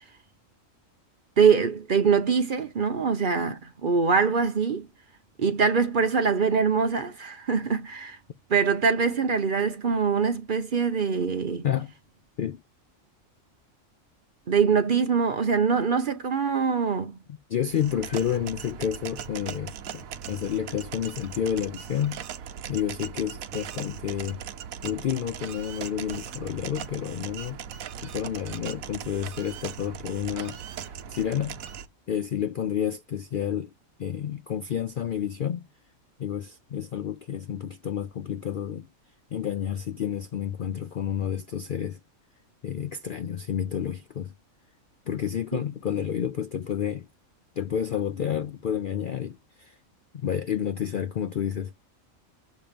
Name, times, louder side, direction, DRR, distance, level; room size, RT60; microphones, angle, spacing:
voice 1, 1.4-4.9 5.4-8.2 8.5-11.6 14.5-17.2 45.5-45.6, right 6 dB, 45° right, 0.8 m, -23 dB
voice 2, 17.3-22.2 22.7-24.4 24.8-27.6 28.0-30.6 30.8-31.6 32.1-33.7 34.0-35.7 36.2-38.9 39.3-42.0 42.6-44.3 45.1-47.1 47.6-49.8 50.1-51.7, left 9 dB, 65° left, 0.5 m, -30 dB
sound 1, 17.7-31.9, right 8 dB, 90° right, 1.2 m, -39 dB
7.2 x 2.9 x 5.0 m
omnidirectional pair, 1.4 m